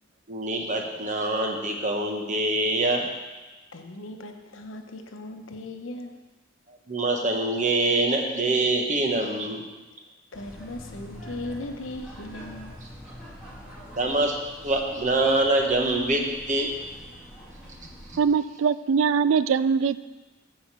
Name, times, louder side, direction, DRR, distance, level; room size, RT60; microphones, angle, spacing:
voice 1, 0.3-3.1 6.9-9.6 14.0-14.4 14.6-16.7, right 2 dB, 40° right, 2 dB, 1.3 m, -24 dB
voice 2, 3.7-6.2 10.3-12.8, left 1 dB, 70° left, 5 dB, 0.9 m, -38 dB
sound 1, 10.3-18.2, equal, 5° right, 2.2 m, -44 dB
voice 3, 18.2-20.1, right 6 dB, 70° right, 15 dB, 0.3 m, -22 dB
9.1 x 5.0 x 7.3 m, 1.2 s
head